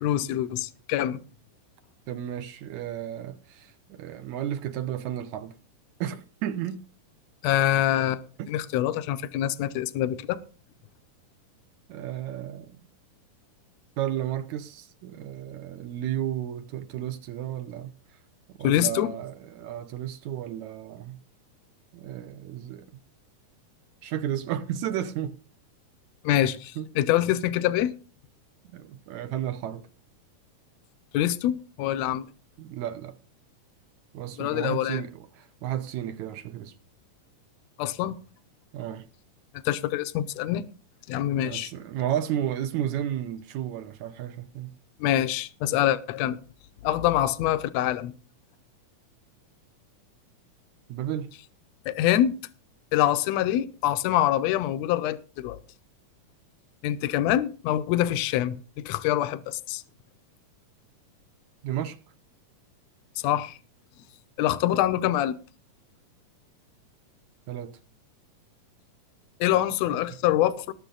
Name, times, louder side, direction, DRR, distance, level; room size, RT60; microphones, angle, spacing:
voice 1, 0.0-1.2 7.4-10.4 18.6-19.1 26.2-27.9 31.1-32.3 34.4-35.0 37.8-38.2 39.6-40.6 41.1-41.7 45.0-46.4 46.8-48.1 51.9-52.4 52.9-55.6 56.8-59.8 63.2-63.6 64.4-65.4 69.4-70.7, left 12 dB, 75° left, 1.7 m, -25 dB
voice 2, 2.1-5.6 6.0-6.9 8.4-8.5 11.9-12.9 14.0-18.2 18.5-21.2 21.9-22.9 24.0-25.4 26.8-26.9 28.7-29.9 32.6-33.2 34.1-36.8 38.7-39.1 41.3-44.8 50.9-51.3 61.6-62.0 67.5-67.8 69.9-70.2, right 11 dB, 75° right, 1.9 m, -33 dB
19.5 x 6.6 x 3.9 m
omnidirectional pair, 3.8 m